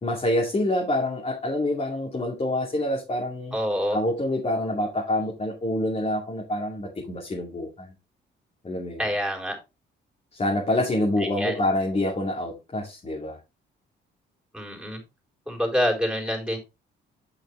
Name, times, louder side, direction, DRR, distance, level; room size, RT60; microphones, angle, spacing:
voice 1, 0.0-3.6 3.9-7.9 8.6-9.1 10.3-13.4, left 1 dB, 30° left, 2.4 m, -26 dB
voice 2, 3.5-4.0 9.0-9.6 11.2-11.6 14.5-15.0 15.5-16.6, equal, 5° right, 3.9 m, -26 dB
8.8 x 6.5 x 3.2 m
cardioid pair, 90°, 20 cm